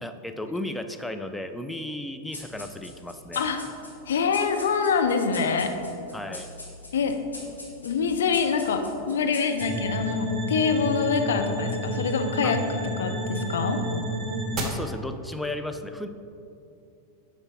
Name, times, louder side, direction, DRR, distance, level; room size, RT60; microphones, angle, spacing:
voice 1, 0.0-3.5 6.1-6.5 12.4-12.5 14.6-16.1, left 1 dB, 5° left, 7 dB, 0.4 m, -34 dB
sound 1, 2.3-10.1, left 2 dB, 80° left, 1.3 m, -43 dB
voice 2, 4.1-5.7 6.9-7.2 7.8-13.8, left 5 dB, 65° left, 6 dB, 0.5 m, -25 dB
sound 2, 9.6-14.6, equal, 25° right, 1.1 m, -30 dB
6.7 x 4.5 x 4.2 m, 2.7 s
figure-of-eight pair, 90°, 0 cm